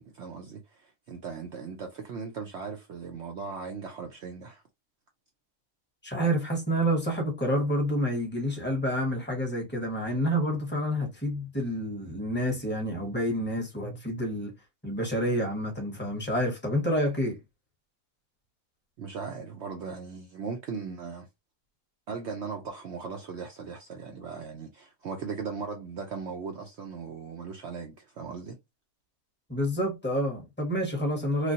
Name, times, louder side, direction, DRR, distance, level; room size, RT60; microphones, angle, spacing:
voice 1, 0.0-4.6 19.0-21.3 22.1-28.6, right 5 dB, 65° right, 0.7 m, -38 dB
voice 2, 6.0-14.5 14.8-17.4 29.5-31.5, equal, 10° left, 0.8 m, -28 dB
3.2 x 2.4 x 2.7 m
omnidirectional pair, 1.7 m